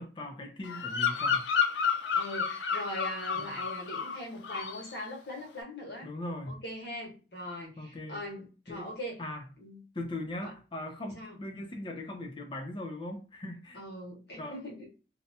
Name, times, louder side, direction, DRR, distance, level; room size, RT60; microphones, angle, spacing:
voice 1, 0.0-1.4 3.4-3.6 6.0-6.6 7.8-8.2 8.7-8.9 9.2-9.5 9.9-13.8 14.4-14.6, left 1 dB, 30° left, 0.5 m, -39 dB
Bird vocalization bird call bird song, 0.6-4.2 4.4-4.9, left 6 dB, 90° left, 0.4 m, -30 dB
voice 2, 2.1-6.1 6.5-9.2 9.6-9.8 10.4-10.5 11.1-11.4 13.7-14.9, left 1 dB, 65° left, 1.1 m, -41 dB
2.7 x 2.1 x 2.7 m
head